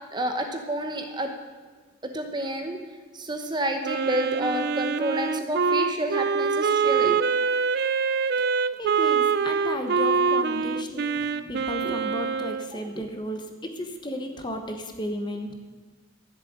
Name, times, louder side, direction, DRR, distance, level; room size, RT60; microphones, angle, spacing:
voice 1, 0.1-1.3 2.0-2.8 3.1-7.2 11.8-12.0 12.7-13.0, right 1 dB, 20° right, 5 dB, 1.0 m, -29 dB
Wind instrument woodwind instrument, 3.8-12.7, right 5 dB, 50° right, 0.5 m, -24 dB
voice 2, 8.5-15.5, left 1 dB, 20° left, 5 dB, 1.2 m, -34 dB
14.5 x 7.5 x 8.6 m, 1.4 s
head